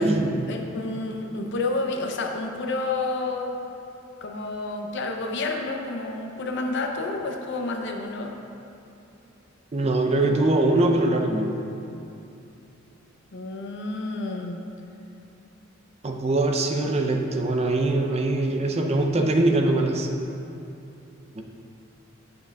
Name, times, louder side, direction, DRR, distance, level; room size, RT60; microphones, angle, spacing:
voice 1, 0.5-3.5 4.2-8.3 13.3-14.6, left 3 dB, 60° left, 2 dB, 0.6 m, -29 dB
voice 2, 9.7-11.5 16.0-20.1 21.4-21.5, right 2 dB, 30° right, 3 dB, 0.5 m, -22 dB
8.7 x 6.7 x 2.3 m, 2.7 s
head